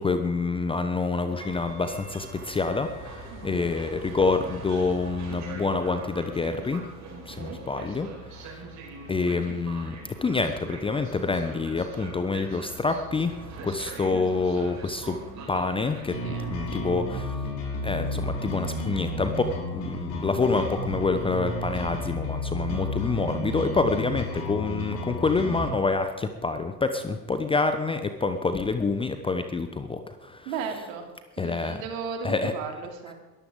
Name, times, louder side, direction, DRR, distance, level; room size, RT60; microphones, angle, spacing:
voice 1, 0.0-6.8 7.3-8.1 8.4-8.6 9.1-10.0 10.2-13.4 13.6-15.2 15.5-16.2 16.5-17.4 17.8-30.5 31.4-31.8 32.2-32.5, left 4 dB, 10° left, 8 dB, 0.8 m, -27 dB
Train, 1.3-16.7, right 2 dB, 35° right, 4.8 m, -42 dB
sound 1, 16.1-25.7, left 1 dB, 40° left, 5.6 m, -32 dB
voice 2, 30.4-31.1 31.4-33.1, right 6 dB, 55° right, 4 dB, 2.9 m, -35 dB
22.0 x 14.0 x 3.8 m, 1.3 s
figure-of-eight pair, 85°, 49 cm